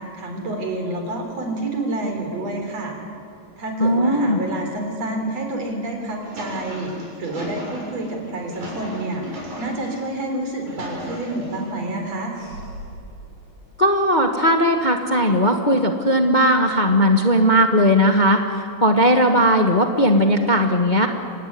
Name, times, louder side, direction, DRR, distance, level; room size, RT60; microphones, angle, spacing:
voice 1, 0.0-2.9 3.6-6.9 7.2-9.2 9.6-12.4, right 2 dB, 55° right, 3 dB, 5.0 m, -28 dB
voice 2, 3.8-4.4 13.8-21.1, equal, 30° left, 3 dB, 0.8 m, -17 dB
sound 1, 6.0-10.0 10.4-11.7 12.3-13.0, equal, 70° right, 8.4 m, -36 dB
26.5 x 18.0 x 9.7 m, 2.5 s
omnidirectional pair, 3.4 m